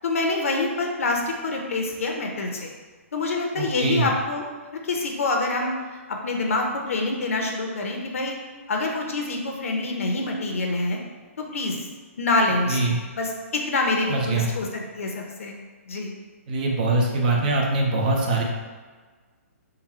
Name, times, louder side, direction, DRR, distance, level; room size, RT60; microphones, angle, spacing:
voice 1, 0.0-2.7 3.1-4.5 4.7-8.3 8.7-11.0 11.4-11.9 12.2-15.5 15.9-16.1, left 2 dB, 65° left, 1 dB, 0.8 m, -26 dB
voice 2, 3.6-4.1 12.7-13.0 14.1-14.5 16.5-18.4, right 2 dB, 35° right, -1 dB, 0.6 m, -23 dB
3.9 x 2.3 x 4.2 m, 1.4 s
hypercardioid pair, 165°, 8 cm